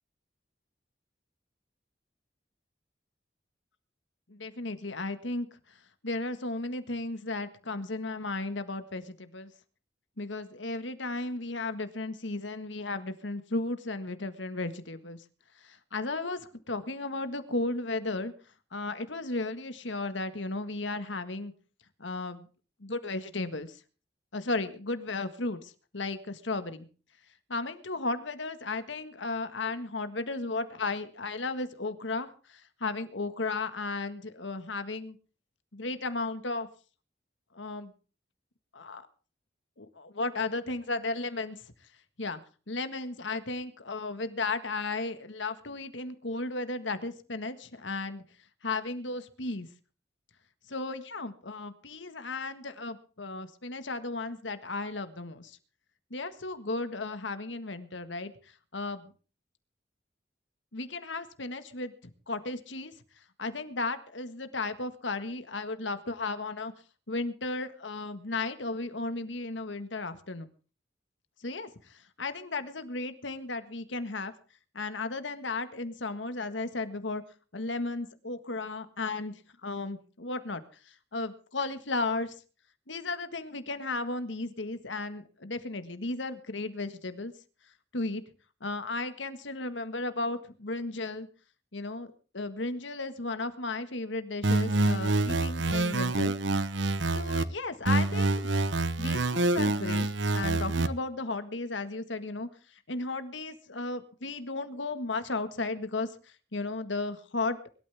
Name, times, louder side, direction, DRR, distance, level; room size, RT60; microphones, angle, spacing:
voice 1, 4.3-5.5 6.0-9.5 10.2-15.2 15.6-18.3 18.7-21.5 22.0-22.5 22.8-23.8 24.3-26.9 27.5-35.2 35.7-36.7 37.5-37.9 38.7-39.1 39.8-41.6 42.2-42.4 42.7-48.2 48.6-49.7 50.7-55.6 56.1-58.3 58.7-59.1 60.7-61.9 62.3-62.9 63.4-66.7 67.1-70.5 71.4-74.3 74.7-77.2 77.5-82.4 82.9-87.3 87.9-88.2 88.6-91.3 91.7-96.3 97.1-98.5 99.0-100.1 100.3-102.5 102.9-106.1 106.5-107.6, left 3 dB, 90° left, 10 dB, 1.7 m, -34 dB
sound 1, 94.4-97.5 97.9-100.9, right 2 dB, 85° right, 1.0 m, -27 dB
24.0 x 12.5 x 3.6 m, 0.38 s
head